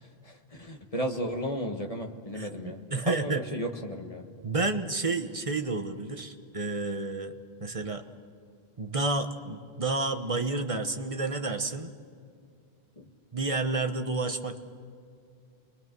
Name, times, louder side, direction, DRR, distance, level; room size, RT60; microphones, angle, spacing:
voice 1, 0.2-4.3 13.0-13.1, equal, 35° left, 3 dB, 1.6 m, -34 dB
voice 2, 2.3-3.4 4.4-8.0 8.8-11.9 13.3-14.6, right 3 dB, 30° right, 6 dB, 1.1 m, -30 dB
29.0 x 22.0 x 6.2 m, 2.3 s
omnidirectional pair, 1.1 m